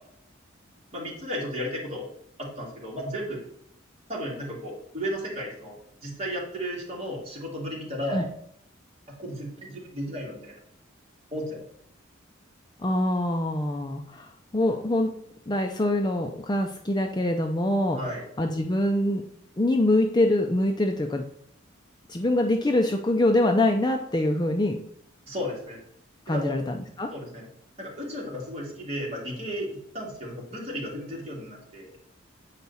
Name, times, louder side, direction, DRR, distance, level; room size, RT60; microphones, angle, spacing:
voice 1, 0.9-2.1 2.4-3.4 4.1-5.8 6.0-8.2 9.2-10.6 11.3-11.6 17.9-18.2 25.3-25.8 26.3-26.5 27.1-27.5 27.8-31.9, equal, 30° right, -4 dB, 2.4 m, -34 dB
voice 2, 12.8-15.1 15.5-18.0 18.4-19.2 19.6-21.3 22.1-24.8 26.3-27.1, left 1 dB, 20° left, 4 dB, 0.4 m, -24 dB
8.2 x 4.6 x 4.1 m, 0.70 s
head